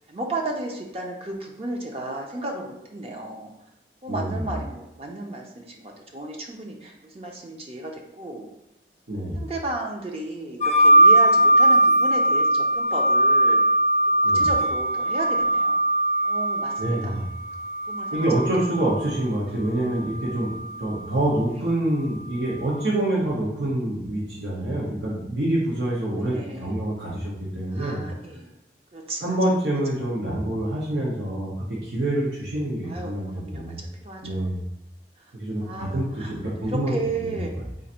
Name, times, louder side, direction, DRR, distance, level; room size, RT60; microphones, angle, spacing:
voice 1, 0.1-3.5 4.0-8.5 9.4-13.6 14.2-15.8 16.2-17.3 17.9-18.3 21.5-21.7 26.2-26.8 27.7-28.5 28.9-29.4 32.8-34.5 35.2-35.3 35.6-37.5, right 2 dB, 35° right, 1 dB, 0.5 m, -34 dB
voice 2, 4.1-4.4 9.1-9.4 14.2-14.5 16.8-17.3 18.1-20.5 20.8-28.0 29.2-33.3 33.5-33.8 34.2-34.6 35.3-36.9 37.2-37.3, right 1 dB, 80° right, -6 dB, 0.9 m, -26 dB
sound 1, 10.6-19.0 20.0-20.9, right 1 dB, 40° left, 0.4 m, -20 dB
3.9 x 2.5 x 4.2 m, 0.85 s
head